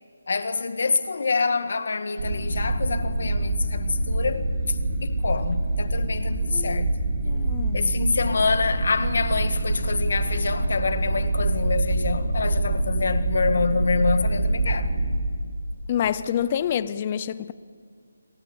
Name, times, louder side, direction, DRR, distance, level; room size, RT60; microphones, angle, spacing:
voice 1, 0.3-7.0 7.7-14.9, left 4 dB, 50° left, 1.7 m, -26 dB
sound 1, 2.2-15.1, right 2 dB, 40° right, 5.8 m, -25 dB
voice 2, 6.5-6.8 7.2-7.9 15.9-17.5, left 9 dB, 20° left, 0.5 m, -27 dB
27.0 x 22.0 x 7.1 m
hypercardioid pair, 175°, 0 cm